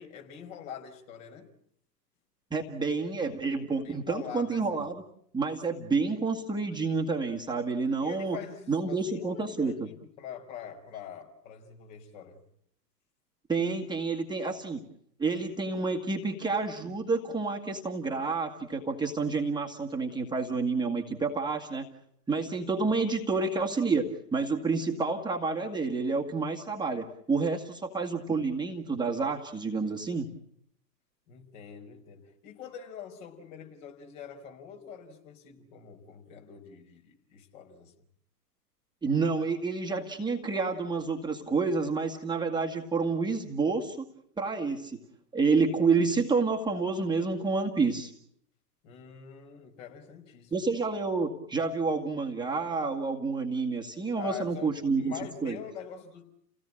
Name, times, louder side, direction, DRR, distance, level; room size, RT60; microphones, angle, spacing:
voice 1, 0.0-1.5 3.8-4.9 5.5-5.6 8.0-12.4 31.3-37.9 48.8-50.5 54.2-56.2, left 8 dB, 50° left, 4 dB, 5.0 m, -44 dB
voice 2, 2.5-5.0 5.3-8.4 8.7-9.9 13.5-14.8 15.2-21.9 22.3-30.3 39.0-44.1 44.4-45.0 45.3-48.1 50.5-55.6, right 4 dB, 10° right, 0 dB, 1.9 m, -29 dB
30.0 x 17.5 x 8.8 m, 0.70 s
figure-of-eight pair, 100°, 50 cm